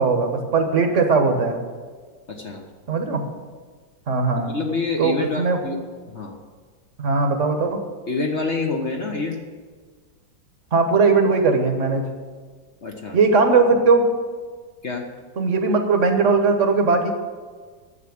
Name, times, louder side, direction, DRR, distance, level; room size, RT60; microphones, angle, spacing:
voice 1, 0.0-1.6 2.9-3.2 4.1-4.5 5.0-5.6 7.0-7.8 10.7-12.0 13.1-14.0 15.4-17.1, right 4 dB, 45° right, 5 dB, 1.4 m, -19 dB
voice 2, 2.3-2.6 4.5-5.8 6.1-6.4 8.1-9.4 12.8-13.2 14.8-15.0, left 3 dB, 45° left, 1 dB, 1.1 m, -27 dB
9.5 x 6.9 x 8.7 m, 1.5 s
omnidirectional pair, 2.1 m